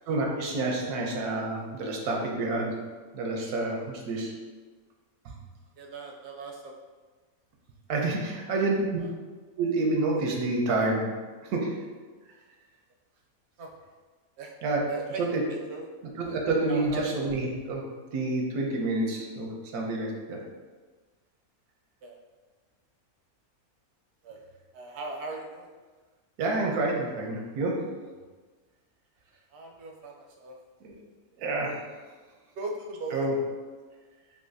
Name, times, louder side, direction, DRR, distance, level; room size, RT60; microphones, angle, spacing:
voice 1, 0.1-2.7 3.1-4.3 7.9-9.0 9.6-11.0 11.5-11.7 14.6-14.8 15.2-15.4 16.2-17.8 18.1-20.4 26.4-27.8 30.8-30.9 31.4-31.7 33.1-33.3, right 2 dB, 90° right, 0 dB, 1.2 m, -28 dB
voice 2, 5.8-6.8 9.0-9.1 13.6-13.7 14.4-14.5 14.9-15.9 16.2-16.4 16.7-17.1 22.0-22.2 24.2-24.4 24.7-25.7 29.5-30.6 32.6-33.2, right 3 dB, 65° right, 0 dB, 0.7 m, -38 dB
4.0 x 2.7 x 2.6 m, 1.4 s
omnidirectional pair, 1.6 m